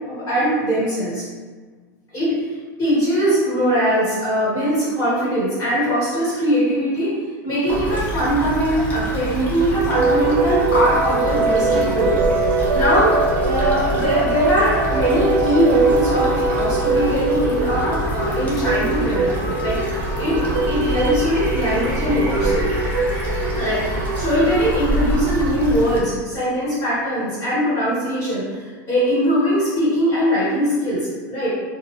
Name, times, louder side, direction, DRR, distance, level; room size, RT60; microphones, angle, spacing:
voice 1, 0.1-1.2 2.1-2.3 2.8-7.1 7.4-12.1 12.4-13.1 13.4-22.6 23.6-31.5, equal, 35° left, -10 dB, 1.5 m, -21 dB
sound 1, 7.7-26.0, equal, 15° left, 0.7 m, -27 dB
sound 2, 9.9-24.3, right 3 dB, 85° right, 0.4 m, -22 dB
sound 3, 18.2-25.1, equal, 20° right, 0.7 m, -35 dB
2.6 x 2.3 x 3.1 m, 1.4 s
supercardioid pair, 130°, 10 cm